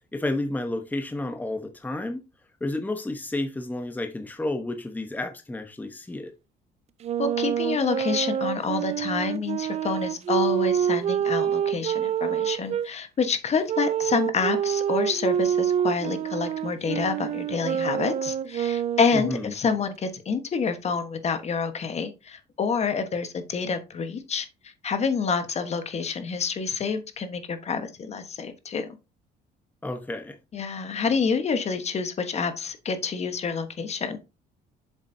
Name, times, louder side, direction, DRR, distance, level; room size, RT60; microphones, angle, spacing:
voice 1, 0.1-2.2 2.6-6.3 19.1-19.5 29.8-30.4, left 2 dB, 10° left, 1.0 m, -31 dB
Wind instrument woodwind instrument, 7.0-12.9 13.7-19.4, right 9 dB, 40° right, 0.4 m, -27 dB
voice 2, 7.2-24.5 24.8-29.0 30.5-34.2, left 5 dB, 40° left, 1.3 m, -28 dB
7.3 x 7.3 x 2.7 m
cardioid pair, 110°, 17 cm